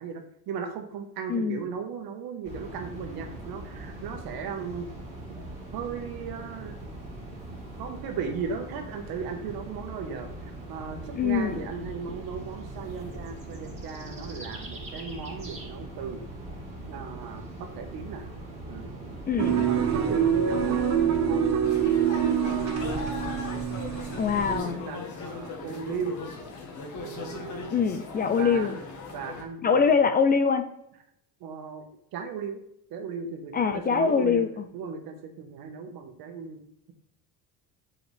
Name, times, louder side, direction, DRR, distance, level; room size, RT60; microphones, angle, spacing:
voice 1, 0.0-4.9 5.7-6.8 7.8-16.2 16.9-18.3 18.7-19.2 19.6-21.5 22.4-23.0 24.5-26.2 26.9-27.9 28.4-28.7 29.1-30.1 31.4-32.6 32.9-34.5 34.7-36.9, right 6 dB, 75° right, 5 dB, 1.4 m, -37 dB
voice 2, 1.3-1.6 11.1-11.6 19.3-19.7 24.2-24.8 27.7-28.8 29.6-30.7 33.5-34.5, left 6 dB, 25° left, 9 dB, 0.4 m, -23 dB
sound 1, 2.4-21.3, right 1 dB, 15° right, 2.4 m, -41 dB
sound 2, 19.4-24.6, right 8 dB, 45° right, 1.3 m, -25 dB
sound 3, 21.6-29.4, left 4 dB, 55° left, 1.5 m, -39 dB
7.9 x 4.9 x 3.4 m, 0.77 s
cardioid pair, 160°, 36 cm